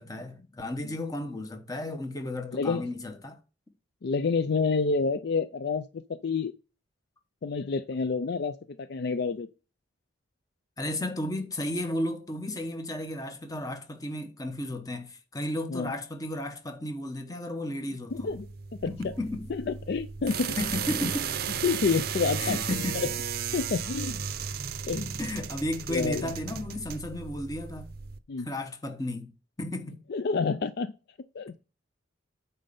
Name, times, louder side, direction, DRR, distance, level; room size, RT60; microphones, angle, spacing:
voice 1, 0.0-3.4 10.8-18.3 18.9-19.4 20.6-21.3 22.4-23.1 25.2-27.9 28.4-29.3 29.6-30.0, left 1 dB, 20° left, 1.0 m, -34 dB
voice 2, 2.5-2.9 4.0-6.5 7.4-9.5 15.7-15.9 18.1-18.5 18.8-18.9 19.5-20.6 21.0-21.1 21.6-22.6 22.9-23.1 23.5-24.2 24.9-25.2 25.9-26.3 28.3-28.5 30.1-30.9 31.3-31.6, left 4 dB, 55° left, 0.4 m, -28 dB
sound 1, 18.1-28.2, right 7 dB, 55° right, 0.5 m, -35 dB
9.0 x 4.3 x 5.3 m
head